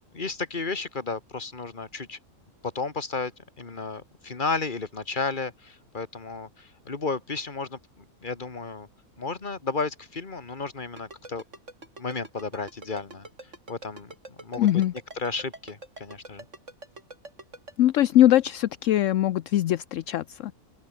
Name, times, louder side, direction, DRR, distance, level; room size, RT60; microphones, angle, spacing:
voice 1, 0.1-2.2 2.7-3.3 3.6-8.9 9.2-11.4 12.0-13.3 13.7-14.8 15.2-16.5, left 4 dB, 35° left, 2.1 m, -33 dB
Ringtone, 11.0-17.7, right 2 dB, 55° right, 5.3 m, -43 dB
voice 2, 14.6-14.9 17.8-20.5, left 13 dB, 65° left, 0.9 m, -21 dB
open air
omnidirectional pair, 1.5 m